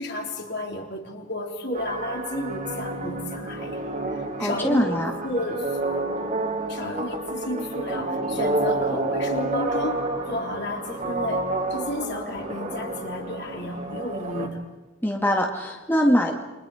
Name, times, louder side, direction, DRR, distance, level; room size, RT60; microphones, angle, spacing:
voice 1, 0.0-3.8 4.4-5.7 6.7-10.0 10.3-11.5 11.7-14.6, left 1 dB, 55° left, 1 dB, 3.9 m, -32 dB
sound 1, 1.7-14.5, right 2 dB, 35° right, 3.4 m, -29 dB
voice 2, 4.4-5.1 15.0-16.3, equal, 10° left, 1 dB, 1.9 m, -22 dB
29.0 x 24.5 x 5.0 m, 1.1 s
head